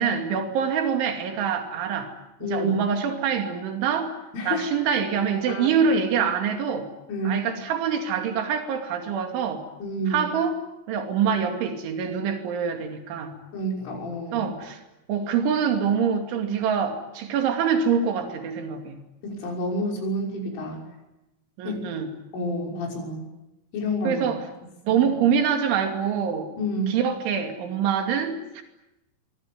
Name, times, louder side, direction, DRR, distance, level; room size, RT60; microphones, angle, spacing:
voice 1, 0.0-2.1 2.4-4.1 4.5-6.9 7.3-9.6 10.1-10.6 10.9-13.3 14.3-14.8 15.1-19.0 21.6-22.1 24.0-24.4 24.8-26.5 26.9-28.6, right 7 dB, 75° right, 5 dB, 5.0 m, -25 dB
voice 2, 2.4-2.7 4.3-4.7 5.5-5.7 7.1-7.4 9.8-10.3 13.5-14.4 19.2-20.8 21.6-21.8 22.3-23.3 23.7-24.3 24.9-25.0 26.6-27.0, equal, 90° left, 0 dB, 8.6 m, -28 dB
24.0 x 24.0 x 9.6 m, 0.96 s
omnidirectional pair, 5.5 m